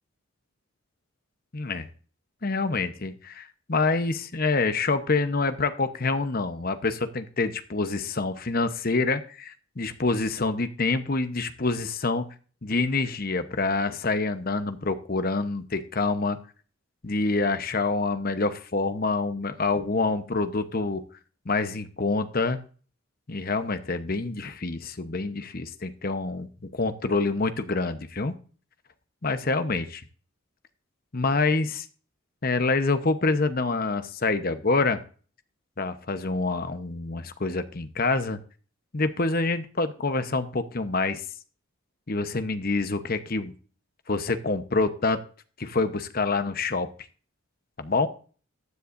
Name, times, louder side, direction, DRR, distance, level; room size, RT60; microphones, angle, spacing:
voice 1, 1.5-1.9 2.4-12.3 12.6-16.4 17.0-21.0 21.5-22.6 23.3-26.5 26.7-28.3 29.2-30.0 31.1-31.9 32.4-35.0 35.8-38.4 38.9-41.2 42.1-43.5 44.1-45.2 45.6-46.9 47.8-48.1, left 3 dB, 45° left, 10 dB, 0.9 m, -26 dB
14.5 x 9.9 x 2.6 m, 0.40 s
head